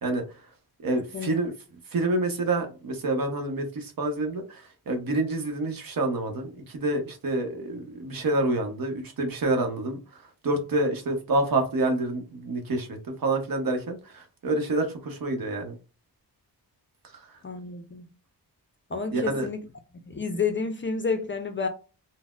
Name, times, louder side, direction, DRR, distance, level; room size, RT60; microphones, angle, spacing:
voice 1, 0.8-1.5 1.9-15.8 17.1-17.2 19.1-19.5, right 2 dB, 60° right, 0.9 m, -28 dB
voice 2, 17.4-18.1 18.9-19.6 20.1-21.7, left 5 dB, 30° left, 0.4 m, -30 dB
3.9 x 2.1 x 2.3 m
wide cardioid pair, 110°, 40 cm